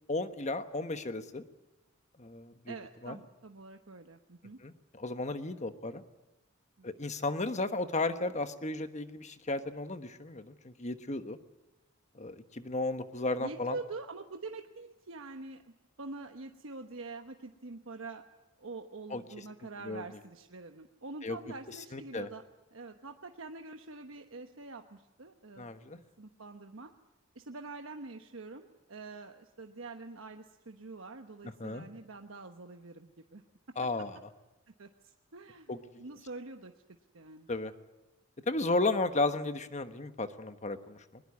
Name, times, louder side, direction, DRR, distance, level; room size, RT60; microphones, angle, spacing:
voice 1, 0.1-1.4 2.2-2.7 3.0-3.2 4.6-6.0 6.8-11.4 12.1-13.8 19.1-19.2 19.8-20.0 21.2-21.4 21.9-22.3 25.6-26.0 31.6-31.8 33.8-34.2 35.7-35.8 37.5-37.7 38.5-41.2, left 2 dB, 35° left, 9 dB, 1.3 m, -34 dB
voice 2, 2.7-4.6 6.8-6.9 13.4-18.2 18.6-22.4 22.7-26.9 27.3-33.4 34.8-35.7 36.0-36.7 37.1-37.5, right 3 dB, 80° right, 5 dB, 1.1 m, -45 dB
21.5 x 20.5 x 9.6 m, 1.0 s
head